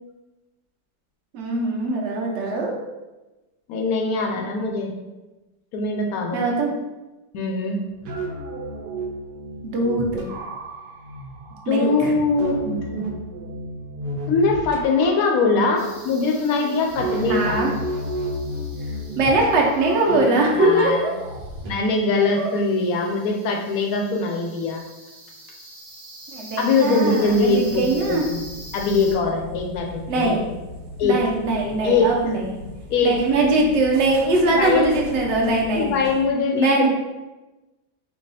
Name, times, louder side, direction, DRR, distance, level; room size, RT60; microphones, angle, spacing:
voice 1, 1.3-2.8 6.3-6.7 9.6-10.3 11.7-12.1 17.3-17.7 19.2-21.1 22.4-22.5 26.3-28.2 30.1-30.4 31.0-32.6 33.0-35.9 36.5-36.9, right 2 dB, 55° right, -1 dB, 0.8 m, -21 dB
voice 2, 3.7-4.9 5.7-6.4 7.3-7.8 11.7-13.0 14.3-17.6 20.0-21.0 21.7-24.8 26.6-28.4 28.7-30.3 31.0-31.2 31.8-32.1 32.9-33.2 34.5-34.9 35.7-36.9, left 3 dB, 70° left, 2 dB, 0.9 m, -22 dB
sound 1, 7.8-21.7, right 1 dB, 70° right, 1.3 m, -32 dB
sound 2, 15.8-29.1, right 1 dB, 40° right, 1.1 m, -44 dB
sound 3, 27.2-36.3, equal, 90° right, 1.5 m, -39 dB
4.6 x 2.3 x 4.0 m, 1.1 s
omnidirectional pair, 2.0 m